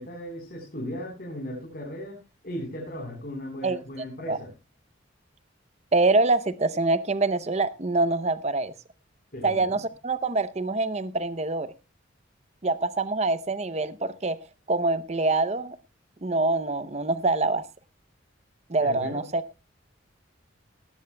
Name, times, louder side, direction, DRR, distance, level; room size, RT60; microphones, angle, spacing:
voice 1, 0.0-2.2 2.4-4.5 9.3-9.8 18.8-19.2, equal, 50° left, -1 dB, 3.9 m, -36 dB
voice 2, 5.9-8.7 9.4-11.7 12.6-14.4 14.7-15.8 16.2-17.7 18.7-19.4, right 3 dB, 35° right, 15 dB, 0.7 m, -25 dB
18.0 x 14.5 x 2.2 m, 0.26 s
head